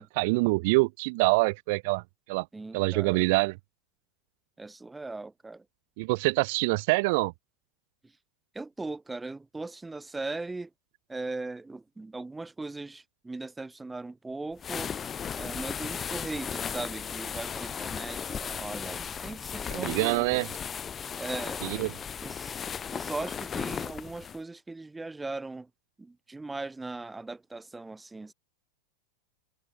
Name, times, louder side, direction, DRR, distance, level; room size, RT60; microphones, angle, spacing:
voice 1, 0.0-2.0 2.3-2.5 2.7-3.6 6.0-7.3 19.7-20.5 21.6-21.9, right 27 dB, 55° right, 0.6 m, -25 dB
voice 2, 2.5-3.3 4.6-5.6 8.5-10.7 11.1-14.9 15.3-20.4 21.2-22.6 22.9-25.7 26.0-28.3, right 3 dB, 5° right, 1.1 m, -39 dB
sound 1, 14.6-24.4, left 7 dB, 20° left, 0.7 m, -36 dB
supercardioid pair, 145°, 0 cm